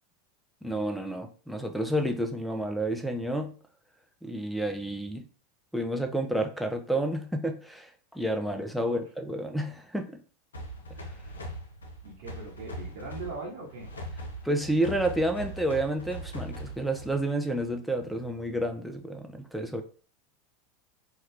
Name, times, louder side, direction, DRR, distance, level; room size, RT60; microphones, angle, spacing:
voice 1, 0.6-3.5 4.2-5.2 5.7-10.1 14.4-19.8, right 1 dB, ahead, 4 dB, 0.6 m, -30 dB
voice 2, 8.4-9.0 12.0-13.9, right 3 dB, 65° right, -4 dB, 1.0 m, -41 dB
sound 1, 10.5-17.3, equal, 85° left, 0.6 m, -40 dB
2.8 x 2.3 x 3.3 m, 0.39 s
hypercardioid pair, 90°, 0 cm